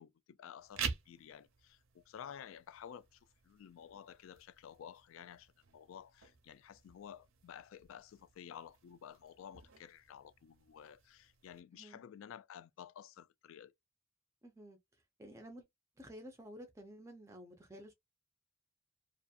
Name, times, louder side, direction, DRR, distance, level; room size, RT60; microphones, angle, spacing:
voice 1, 0.0-13.7, left 8 dB, 70° left, 0.3 m, -53 dB
sound 1, 0.6-11.6, right 6 dB, 70° right, 0.6 m, -49 dB
voice 2, 14.4-14.8 15.2-15.6 16.0-17.9, equal, 15° right, 0.4 m, -52 dB
2.7 x 2.5 x 2.3 m
head